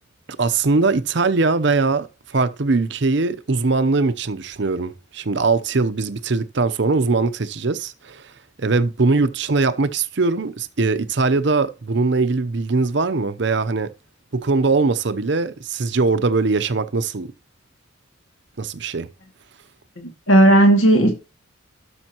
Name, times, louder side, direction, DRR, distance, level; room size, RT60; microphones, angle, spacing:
voice 1, 0.4-8.2 8.6-13.9 14.3-17.3 18.6-19.1, right 3 dB, 60° right, 0.7 m, -21 dB
voice 2, 20.0-21.1, right 1 dB, 75° left, 2.2 m, -14 dB
12.5 x 6.3 x 3.0 m
head